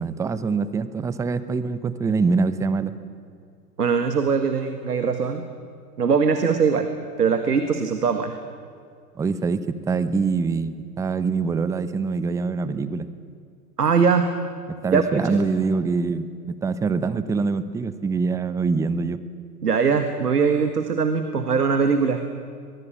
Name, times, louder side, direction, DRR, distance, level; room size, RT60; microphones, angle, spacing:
voice 1, 0.0-2.9 9.2-13.1 14.8-19.2, right 4 dB, 5° right, 14 dB, 0.7 m, -24 dB
voice 2, 3.8-5.4 6.0-6.9 7.2-8.4 13.8-14.3 14.9-15.4 19.6-22.2, right 5 dB, 75° right, 8 dB, 1.8 m, -21 dB
22.5 x 22.5 x 8.8 m, 2.3 s
figure-of-eight pair, 100°, 48 cm